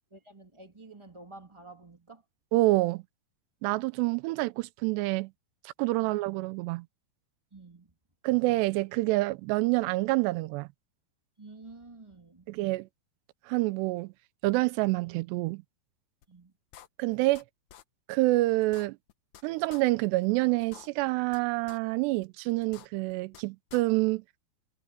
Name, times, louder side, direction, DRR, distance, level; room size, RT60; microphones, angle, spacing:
voice 1, 0.1-2.2 7.5-7.9 11.4-12.5 16.3-16.5, right 3 dB, 25° right, 0.6 m, -50 dB
voice 2, 2.5-3.0 3.6-5.3 5.8-6.9 8.2-10.7 12.5-12.9 13.5-14.1 14.4-15.6 17.0-17.4 18.1-19.0 19.4-24.2, right 20 dB, 90° right, 2.8 m, -27 dB
sound 1, 16.2-16.3 16.7-17.4 17.7-17.8 18.2-18.3 18.6-19.4 19.7-19.8 20.2-20.3 20.6-21.4 21.7-21.8 22.2-22.3 22.6-23.4 23.7-23.8, left 11 dB, 75° left, 1.7 m, -50 dB
omnidirectional pair, 4.8 m